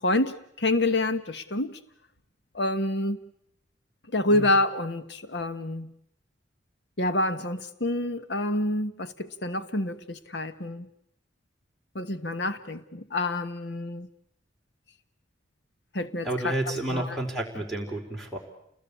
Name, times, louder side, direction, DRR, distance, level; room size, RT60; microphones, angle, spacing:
voice 1, 0.0-1.8 2.5-3.2 4.1-5.9 7.0-10.9 11.9-14.1 15.9-17.2, left 1 dB, 65° left, 1.3 m, -28 dB
voice 2, 16.2-18.4, right 1 dB, ahead, 4.4 m, -30 dB
29.5 x 21.0 x 8.6 m
head